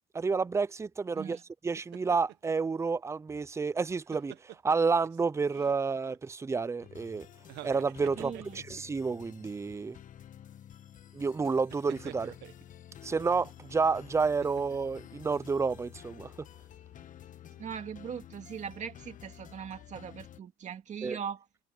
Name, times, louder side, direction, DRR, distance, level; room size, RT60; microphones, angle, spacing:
voice 1, 0.1-1.4 1.6-7.3 7.6-10.0 11.1-12.3 13.0-16.3 21.0-21.2, right 4 dB, 15° right, 0.5 m, -30 dB
sound 1, 1.8-2.5 3.7-5.2 5.5-6.2 7.4-9.0 9.6-9.8 11.7-12.7 14.2-14.9 15.3-15.5, right 15 dB, 80° right, 1.3 m, -49 dB
sound 2, 6.8-20.4, left 10 dB, 50° left, 1.6 m, -51 dB
voice 2, 8.2-8.6 17.6-21.4, right 7 dB, 45° right, 2.3 m, -40 dB
cardioid pair, 110°, 17 cm